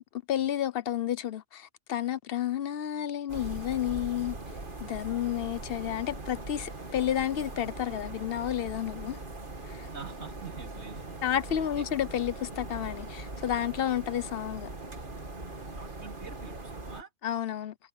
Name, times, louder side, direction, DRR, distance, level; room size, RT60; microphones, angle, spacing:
voice 1, 0.1-4.4 4.8-9.2 9.6-9.9 11.2-14.7 17.2-17.7, left 11 dB, 60° left, 0.9 m, -31 dB
sound 1, 3.3-17.0, right 2 dB, 45° right, 2.5 m, -41 dB
voice 2, 9.9-11.0 15.8-17.1, right 5 dB, 70° right, 3.3 m, -45 dB
omnidirectional pair, 1.2 m